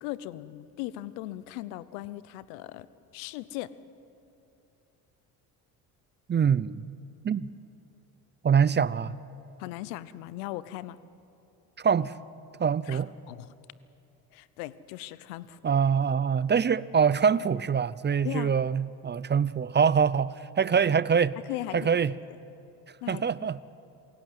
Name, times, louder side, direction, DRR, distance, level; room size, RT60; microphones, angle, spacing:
voice 1, 0.0-2.9 3.1-3.7 9.6-11.0 12.9-13.5 14.3-15.6 18.2-18.5 21.5-22.0 23.0-23.2, left 16 dB, 75° left, 17 dB, 0.9 m, -38 dB
voice 2, 6.3-6.8 7.2-7.5 8.4-9.2 11.8-12.1 12.6-13.1 15.6-21.4 21.7-22.1 23.1-23.6, right 6 dB, 25° right, 19 dB, 0.6 m, -24 dB
27.5 x 16.5 x 8.0 m, 2.7 s
hypercardioid pair, 65°, 45 cm